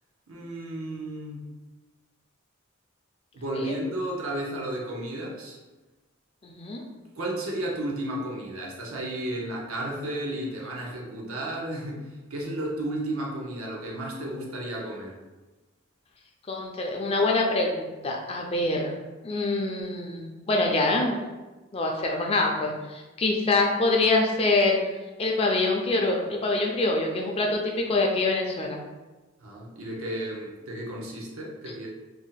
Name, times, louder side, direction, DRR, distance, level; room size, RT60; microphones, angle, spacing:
voice 1, 0.3-1.5 3.3-5.6 7.1-12.0 12.3-15.2 29.4-31.9, right 1 dB, 85° right, -2 dB, 0.7 m, -33 dB
voice 2, 6.4-6.8 16.5-19.0 19.2-21.2 21.7-24.8 25.2-28.8, left 2 dB, 30° left, 1 dB, 0.4 m, -25 dB
2.7 x 2.1 x 3.9 m, 1.2 s
head